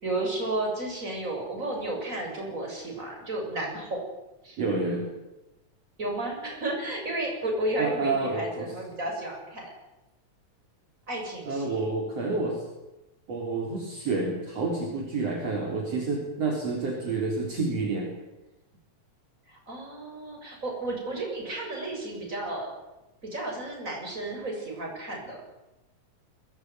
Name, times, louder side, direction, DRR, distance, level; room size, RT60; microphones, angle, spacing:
voice 1, 0.0-4.0 4.4-4.6 6.0-9.7 11.1-11.8 19.5-22.7 23.2-25.4, right 2 dB, 25° right, 0 dB, 7.9 m, -32 dB
voice 2, 4.6-5.1 7.8-8.7 11.5-12.6 13.3-18.1, right 3 dB, 55° right, 0 dB, 4.7 m, -29 dB
22.0 x 19.5 x 9.5 m, 1.0 s
omnidirectional pair, 3.5 m